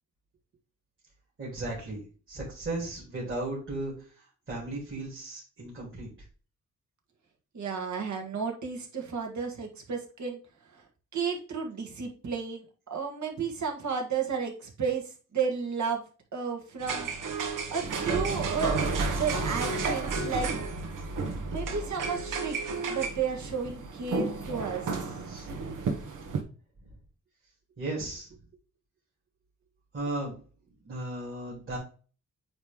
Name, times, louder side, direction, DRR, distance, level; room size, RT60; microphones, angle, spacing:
voice 1, 1.4-2.0 2.3-6.1 17.7-17.8 25.3-25.5 27.8-28.3 29.9-30.4 30.8-31.8, right 2 dB, 40° right, -6 dB, 3.0 m, -36 dB
voice 2, 7.5-10.4 10.7-10.8 11.1-12.6 12.9-16.0 16.3-17.1 17.5-18.8 19.1-20.5 21.5-22.6 22.9-25.2, right 5 dB, 65° right, 1 dB, 1.6 m, -32 dB
sound 1, 16.8-26.4, right 4 dB, 85° right, 1.1 m, -32 dB
8.8 x 3.1 x 3.6 m, 0.38 s
wide cardioid pair, 125°, 31 cm